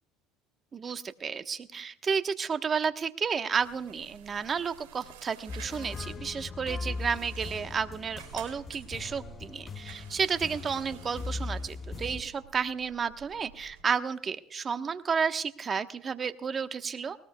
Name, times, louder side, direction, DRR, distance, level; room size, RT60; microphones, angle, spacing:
voice 1, 0.7-17.2, right 6 dB, 35° right, 9 dB, 1.1 m, -32 dB
sound 1, 3.6-13.8, right 10 dB, 85° right, 3.8 m, -51 dB
sound 2, 5.5-12.2, left 3 dB, 35° left, 0.8 m, -39 dB
20.5 x 19.0 x 2.3 m, 0.73 s
supercardioid pair, 90°, 0 cm